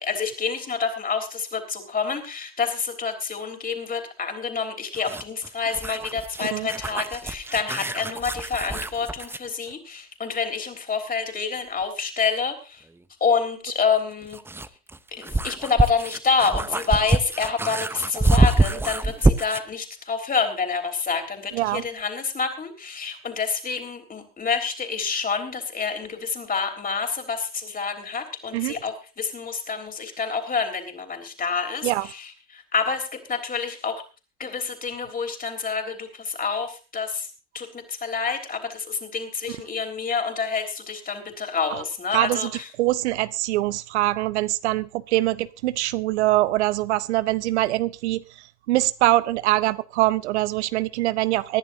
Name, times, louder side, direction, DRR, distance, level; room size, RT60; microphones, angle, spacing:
voice 1, 0.0-12.8 13.2-14.4 15.1-34.0 34.4-37.3 37.5-42.7, left 5 dB, 25° left, 3.6 m, -28 dB
sound 1, 4.9-9.5 11.8-11.9 13.9-19.7, right 2 dB, 5° right, 0.7 m, -25 dB
voice 2, 42.1-42.5 42.8-48.2 48.7-51.6, right 16 dB, 75° right, 0.7 m, -23 dB
24.5 x 11.0 x 2.7 m
hypercardioid pair, 85°, 34 cm